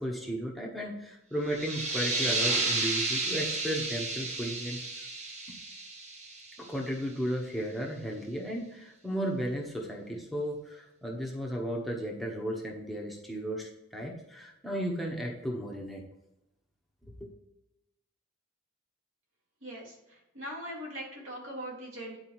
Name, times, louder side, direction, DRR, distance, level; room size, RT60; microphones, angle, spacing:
voice 1, 0.0-4.8 6.6-16.0 17.0-17.3, equal, ahead, -2 dB, 1.1 m, -34 dB
sound 1, 1.5-6.9, right 3 dB, 30° right, 1.1 m, -32 dB
voice 2, 19.6-19.9 20.3-22.2, equal, 60° right, -2 dB, 2.5 m, -40 dB
9.8 x 4.8 x 3.1 m, 0.91 s
head